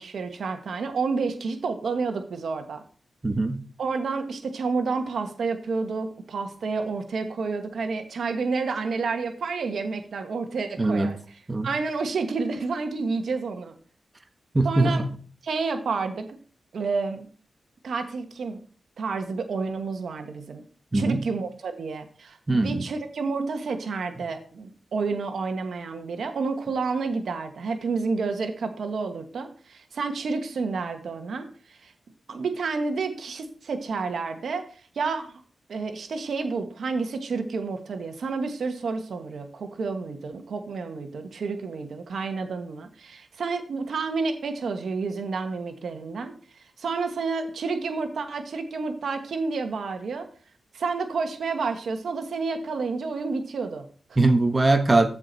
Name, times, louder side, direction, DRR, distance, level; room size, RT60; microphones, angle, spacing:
voice 1, 0.0-2.8 3.8-13.7 14.6-15.0 15.4-16.3 16.7-17.3 17.8-18.6 19.0-20.6 20.9-31.9 32.3-35.4 35.7-50.3 50.7-54.2, right 4 dB, 75° right, 6 dB, 1.2 m, -30 dB
voice 2, 3.2-3.6 10.8-11.1 11.5-11.7 14.5-15.1 20.9-21.2 22.5-22.8 54.2-55.1, right 2 dB, 30° right, 6 dB, 1.2 m, -21 dB
13.0 x 4.8 x 4.0 m, 0.42 s
cardioid pair, 65°, 0 cm